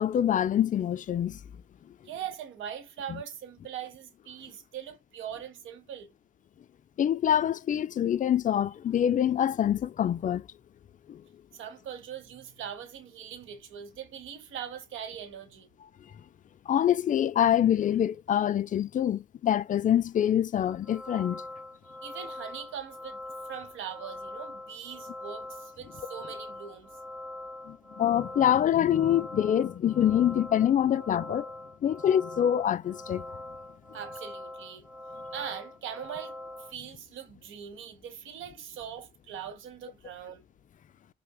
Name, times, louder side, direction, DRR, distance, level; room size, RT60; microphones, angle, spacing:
voice 1, 0.0-1.4 3.1-3.2 7.0-10.5 11.1-11.2 16.7-21.4 27.7-31.5 31.8-33.3, left 10 dB, 40° left, 0.4 m, -25 dB
voice 2, 2.0-6.1 11.5-15.7 22.0-23.2 23.5-26.9 33.9-34.9 35.3-40.4, right 9 dB, 85° right, 1.0 m, -41 dB
sound 1, 20.7-36.7, left 1 dB, ahead, 0.8 m, -43 dB
5.6 x 2.1 x 2.2 m
cardioid pair, 90°, 20 cm